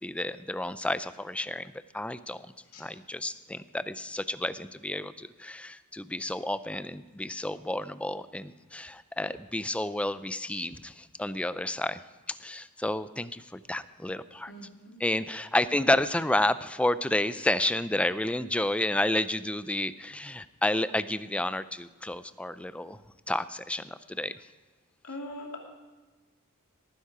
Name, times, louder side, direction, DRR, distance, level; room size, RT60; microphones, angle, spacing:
voice 1, 0.0-2.5 2.8-12.0 12.3-14.5 15.0-23.0 23.3-24.3, left 1 dB, 5° left, 14 dB, 0.4 m, -30 dB
voice 2, 14.5-15.0 25.0-25.6, left 1 dB, 70° left, 0 dB, 2.7 m, -41 dB
18.5 x 10.0 x 4.9 m, 1.3 s
head